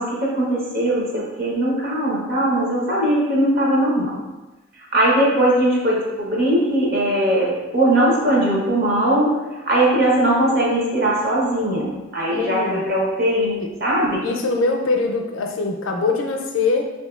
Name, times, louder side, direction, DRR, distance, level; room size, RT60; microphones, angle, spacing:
voice 1, 0.0-4.2 4.9-14.1, right 1 dB, 50° right, -4 dB, 0.8 m, -20 dB
voice 2, 12.3-12.8 13.6-13.7 14.2-16.9, left 3 dB, 75° left, 3 dB, 0.5 m, -22 dB
4.3 x 2.7 x 2.3 m, 1.1 s
head